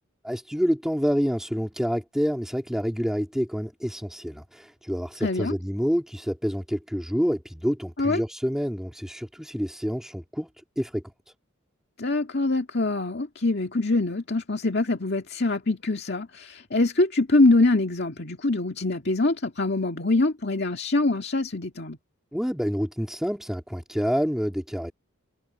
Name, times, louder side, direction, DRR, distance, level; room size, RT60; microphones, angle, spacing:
voice 1, 0.2-10.5 10.8-11.0 22.3-24.9, equal, ahead, 3.7 m, -28 dB
voice 2, 5.2-5.5 8.0-8.2 12.0-22.0, left 2 dB, 50° left, 2.1 m, -24 dB
head